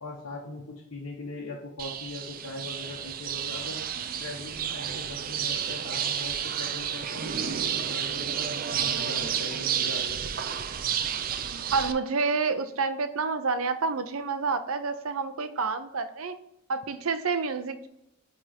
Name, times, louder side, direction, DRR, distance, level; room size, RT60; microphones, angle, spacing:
voice 1, 0.0-10.4, left 2 dB, 80° left, -4 dB, 1.3 m, -41 dB
sound 1, 1.8-11.9, right 8 dB, 40° right, 0.4 m, -31 dB
voice 2, 11.7-16.3 16.7-17.9, right 4 dB, 75° right, 10 dB, 0.6 m, -28 dB
9.1 x 3.6 x 2.9 m, 0.83 s
head